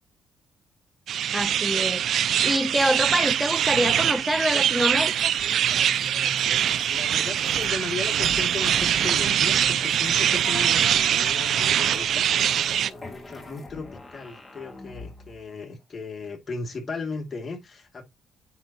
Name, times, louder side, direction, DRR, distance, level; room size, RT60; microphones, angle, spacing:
sound 1, 1.1-12.9, right 10 dB, 70° right, 0.5 m, -23 dB
voice 1, 1.3-5.3, equal, 5° right, 0.4 m, -26 dB
sound 2, 4.1-15.4, left 1 dB, 15° left, 2.2 m, -43 dB
voice 2, 6.9-12.3 12.8-18.0, left 4 dB, 35° left, 2.5 m, -36 dB
9.6 x 3.9 x 3.0 m
cardioid pair, 90°, 0 cm